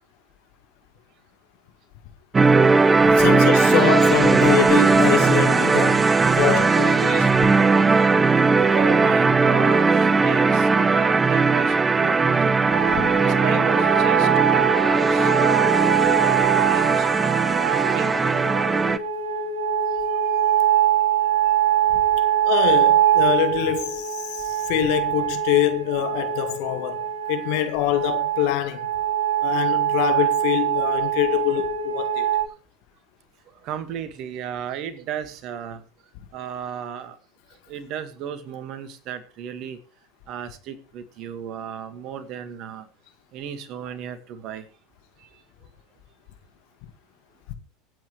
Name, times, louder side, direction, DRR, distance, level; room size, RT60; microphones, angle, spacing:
sound 1, 2.3-19.0, right 4 dB, 20° right, 0.9 m, -18 dB
voice 1, 3.0-7.5 12.9-13.1 22.4-28.9 29.4-32.3 47.5-47.6, left 12 dB, 55° left, 1.9 m, -24 dB
voice 2, 8.6-12.6 13.2-17.1 17.6-18.3 20.1-20.4 33.6-35.8 36.3-37.2 37.7-39.8 40.3-42.9 43.3-44.7 45.2-45.3, right 9 dB, 50° right, 2.0 m, -33 dB
sound 2, 12.7-32.4, right 10 dB, 80° right, 3.8 m, -23 dB
25.0 x 8.7 x 3.3 m
figure-of-eight pair, 80°, 0 cm